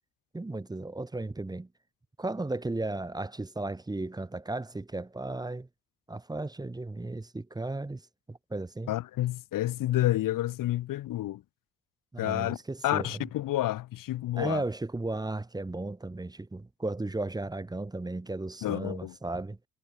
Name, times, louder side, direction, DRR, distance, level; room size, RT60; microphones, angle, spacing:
voice 1, 0.3-1.7 2.2-5.7 6.1-8.0 8.3-8.9 12.1-13.3 14.4-19.6, right 2 dB, 10° right, 1.2 m, -35 dB
voice 2, 8.9-11.4 12.2-12.6 12.8-14.6 18.6-19.1, left 14 dB, 75° left, 0.9 m, -29 dB
cardioid pair, 125°, 33 cm